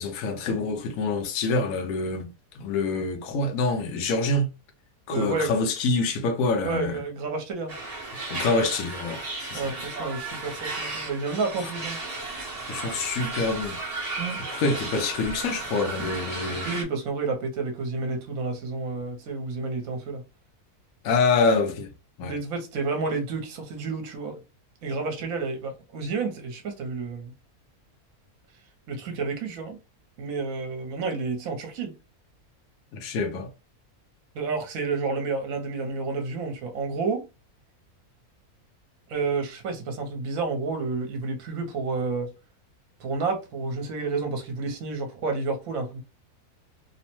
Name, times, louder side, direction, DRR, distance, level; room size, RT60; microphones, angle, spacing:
voice 1, 0.0-2.3 2.5-4.5 5.1-7.0 8.3-9.7 12.7-13.8 14.5-16.7 21.0-21.9 22.2-22.4 32.9-33.5, left 3 dB, 70° left, 1.0 m, -26 dB
voice 2, 5.1-5.5 6.6-7.7 9.5-12.0 14.2-14.4 16.4-20.2 22.2-24.4 24.8-27.3 28.9-29.8 30.2-31.9 34.3-37.2 39.1-42.3 43.0-46.0, right 4 dB, 70° right, 1.1 m, -30 dB
sound 1, 7.7-16.8, right 2 dB, 35° right, 0.7 m, -34 dB
3.0 x 2.0 x 2.9 m
omnidirectional pair, 1.6 m